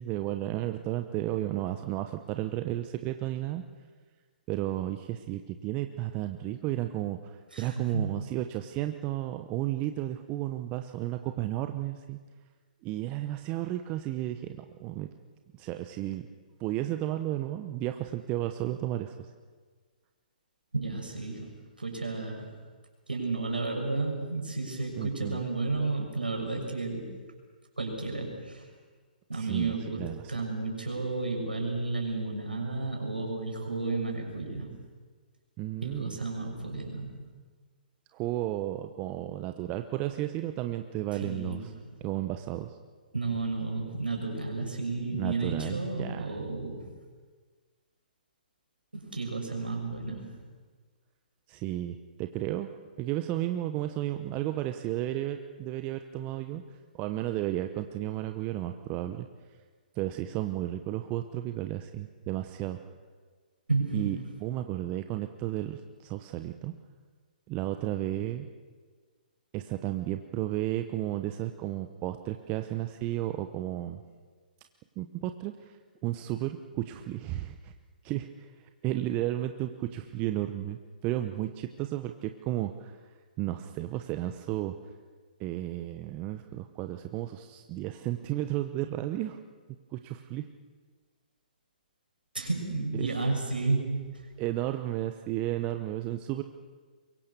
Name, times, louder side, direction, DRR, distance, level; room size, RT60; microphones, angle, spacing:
voice 1, 0.0-3.6 4.5-12.2 12.8-15.1 15.5-16.2 16.6-19.1 25.0-25.5 29.3-30.3 35.6-36.2 38.1-41.7 42.0-42.8 45.1-46.4 51.5-52.7 53.0-56.6 56.9-59.3 60.0-62.8 63.9-66.7 67.5-68.5 69.5-74.0 75.0-75.7 76.0-77.7 78.0-78.5 78.8-83.0 83.4-84.8 85.4-89.4 89.9-90.5 92.9-93.1 94.4-96.4, right 14 dB, 30° right, 7 dB, 1.0 m, -33 dB
voice 2, 7.5-8.2 20.7-21.5 21.8-22.5 23.1-27.0 27.8-28.6 29.3-34.7 35.8-37.2 41.2-41.7 43.1-46.9 48.9-50.3 63.7-64.2 92.3-94.0, right 3 dB, 85° right, 1 dB, 6.5 m, -32 dB
23.5 x 23.0 x 7.0 m, 1.5 s
figure-of-eight pair, 125°, 5 cm